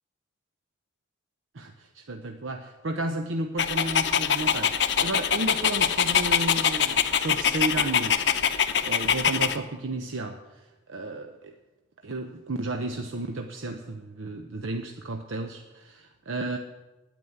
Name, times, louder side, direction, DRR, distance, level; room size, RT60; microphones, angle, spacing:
voice 1, 1.5-8.4 8.8-11.5 12.0-16.6, right 2 dB, 80° right, 5 dB, 0.8 m, -33 dB
Dog, 3.6-9.6, left 8 dB, 60° left, 0.7 m, -24 dB
9.5 x 9.1 x 9.3 m, 1.1 s
head